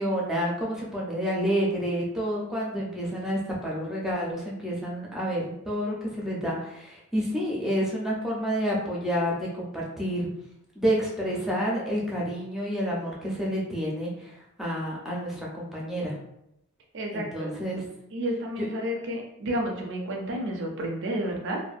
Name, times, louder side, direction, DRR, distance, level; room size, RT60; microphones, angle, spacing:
voice 1, 0.0-10.3 10.8-16.2 17.1-17.8 18.6-18.7, equal, ahead, -4 dB, 0.5 m, -29 dB
voice 2, 16.9-17.5 18.1-21.6, equal, 60° right, 1 dB, 0.4 m, -31 dB
2.6 x 2.1 x 2.4 m, 0.81 s
head